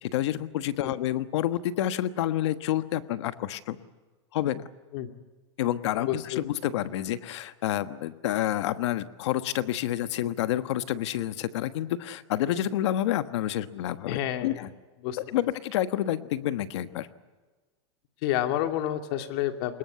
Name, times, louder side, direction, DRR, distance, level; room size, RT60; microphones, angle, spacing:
voice 1, 0.0-3.8 4.3-4.6 5.6-14.7 15.3-17.1, left 12 dB, 75° left, 11 dB, 1.3 m, -29 dB
voice 2, 6.1-6.4 14.1-14.6 15.0-15.2 18.2-19.8, left 12 dB, 55° left, 6 dB, 2.5 m, -29 dB
25.0 x 21.5 x 8.3 m, 1.3 s
supercardioid pair, 150°, 15 cm